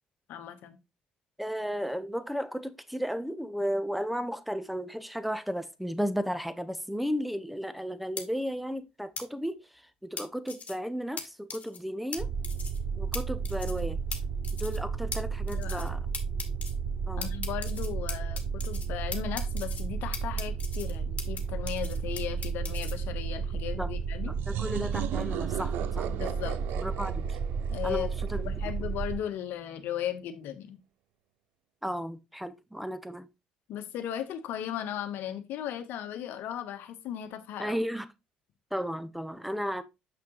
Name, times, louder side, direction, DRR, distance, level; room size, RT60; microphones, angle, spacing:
voice 1, 0.3-0.8 15.5-15.9 17.2-24.3 26.1-26.6 27.7-28.1 28.4-30.8 33.7-37.8, left 10 dB, 65° left, 1.0 m, -36 dB
voice 2, 1.4-12.3 13.0-14.0 14.6-16.0 17.1-17.3 23.8-23.9 24.2-26.1 26.8-27.4 27.8-28.5 28.8-28.9 31.8-33.3 37.6-38.0 38.7-39.8, equal, ahead, 0.9 m, -34 dB
sound 1, 8.2-8.3 9.2-9.3 10.2-10.7 11.2-11.3 11.5-11.8 12.1-12.2 12.4-12.8 13.1-13.2 13.4-13.8 14.1-14.2 14.4-14.8 15.1-15.2 15.5-15.9 16.1-16.7 17.2-18.9 19.1-19.8 20.1-21.4 21.7-22.9, left 5 dB, 40° left, 1.8 m, -38 dB
sound 2, 12.2-29.2, right 6 dB, 50° right, 4.5 m, -33 dB
sound 3, 24.4-28.9, right 11 dB, 70° right, 0.6 m, -37 dB
6.8 x 5.9 x 3.0 m
hypercardioid pair, 60°, 4 cm